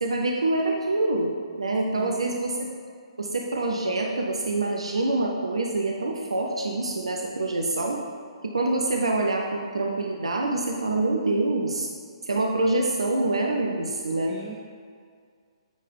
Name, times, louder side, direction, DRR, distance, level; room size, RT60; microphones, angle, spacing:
voice 1, 0.0-1.3 1.5-2.7 3.2-8.0 8.5-11.9 12.2-14.4, right 2 dB, 75° right, 0 dB, 0.8 m, -26 dB
voice 2, 1.9-2.4 14.3-14.6, right 3 dB, 20° right, -3 dB, 0.7 m, -40 dB
8.8 x 3.8 x 5.3 m, 2.1 s
figure-of-eight pair, 130°, 3 cm